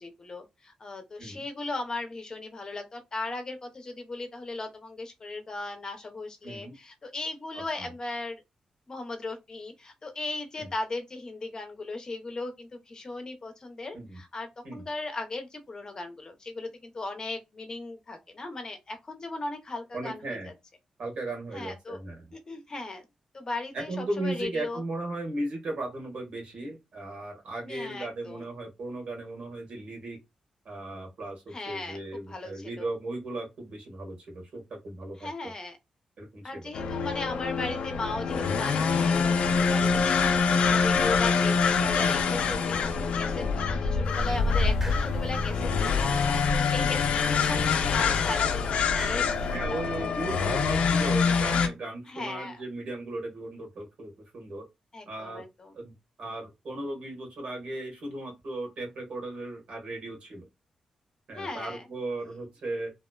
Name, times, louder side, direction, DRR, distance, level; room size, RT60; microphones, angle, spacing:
voice 1, 0.0-8.4 8.9-20.5 21.5-22.0 22.3-23.0 23.3-24.8 27.6-28.5 31.5-32.0 32.3-32.9 35.2-35.8 36.4-49.9 50.4-50.6 52.1-52.6 54.9-55.7 61.3-61.9 62.2-62.3, left 2 dB, 35° left, 0.6 m, -37 dB
voice 2, 6.4-6.7 7.8-7.9 10.6-10.7 13.9-14.2 14.6-14.9 19.9-20.5 21.0-22.3 23.7-30.2 30.6-35.3 36.2-36.6 46.7-46.9 49.5-54.6 55.1-55.4 55.7-55.9 56.2-60.5 61.3-62.9, right 2 dB, 70° right, 1.4 m, -36 dB
sound 1, 36.7-51.7, left 5 dB, 85° left, 0.4 m, -25 dB
sound 2, 44.0-49.6, left 1 dB, 10° right, 0.6 m, -39 dB
2.9 x 2.0 x 2.2 m
cardioid pair, 100°, 2 cm